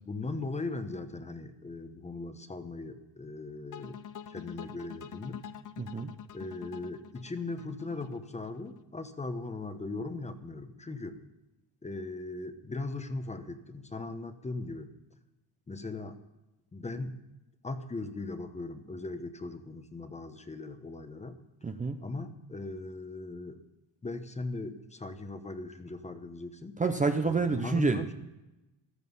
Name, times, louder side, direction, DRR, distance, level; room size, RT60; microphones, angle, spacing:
voice 1, 0.0-4.0 4.3-5.4 6.3-11.2 11.8-14.9 15.7-16.2 16.7-17.2 17.6-21.4 22.0-23.6 24.0-26.8 27.2-28.1, left 3 dB, 15° left, 9 dB, 1.0 m, -39 dB
sound 1, 3.7-8.8, left 9 dB, 45° left, 0.9 m, -46 dB
voice 2, 5.8-6.1 21.6-22.0 26.8-28.1, right 4 dB, 20° right, 7 dB, 0.7 m, -28 dB
14.5 x 13.0 x 5.5 m, 1.0 s
cardioid pair, 125°, 43 cm